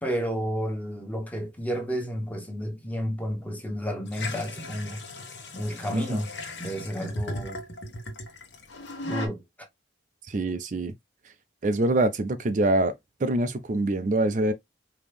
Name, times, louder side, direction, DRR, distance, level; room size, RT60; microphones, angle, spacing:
voice 1, 0.0-5.0 5.5-6.3 6.6-7.6 9.0-9.4, equal, 10° left, 1.0 m, -31 dB
sound 1, 4.1-9.3, left 2 dB, 75° left, 1.4 m, -37 dB
voice 2, 10.2-10.9 11.6-12.9 13.2-14.5, right 2 dB, 40° right, 0.4 m, -24 dB
5.1 x 2.9 x 3.4 m
head